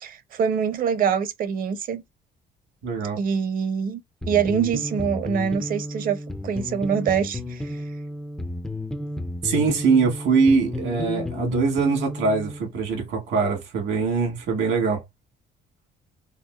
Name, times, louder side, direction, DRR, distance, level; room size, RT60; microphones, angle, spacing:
voice 1, 0.0-2.0 3.2-4.0 4.3-7.8, right 7 dB, 50° right, 0.6 m, -25 dB
voice 2, 2.8-3.2 9.4-15.0, right 4 dB, 85° right, 1.7 m, -22 dB
sound 1, 4.2-12.7, left 1 dB, 5° left, 0.3 m, -32 dB
4.1 x 2.4 x 2.3 m
cardioid pair, 150°, 19 cm